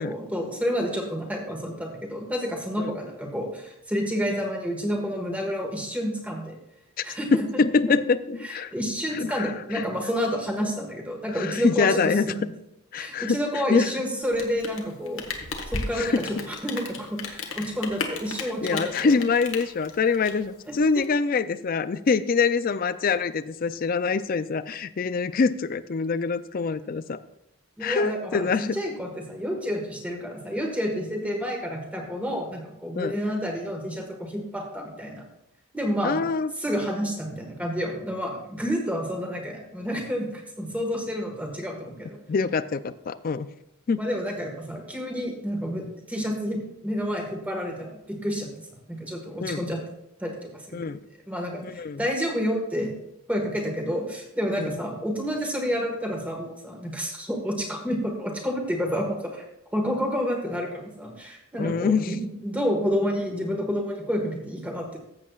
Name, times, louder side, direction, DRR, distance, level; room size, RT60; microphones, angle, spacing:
voice 1, 0.0-6.6 7.0-7.4 7.8-7.9 8.4-12.5 12.9-15.3 15.7-19.1 20.7-21.0 27.8-35.3 35.7-36.2 36.6-42.2 44.0-48.5 48.9-49.8 50.2-50.8 51.3-52.9 53.3-59.4 59.7-65.0, equal, 5° right, 1 dB, 1.5 m, -29 dB
voice 2, 7.0-8.7 9.1-9.9 11.3-12.3 12.9-13.9 15.9-16.2 18.6-27.2 27.8-28.8 33.0-33.2 36.0-36.5 42.3-43.5 43.9-44.0 49.4-49.7 50.7-51.0 51.6-52.0 54.6-54.7 61.6-62.2, left 4 dB, 40° left, 14 dB, 0.3 m, -25 dB
Rain, 14.2-21.0, left 4 dB, 60° left, 1.3 m, -35 dB
14.5 x 7.5 x 2.4 m, 0.85 s
head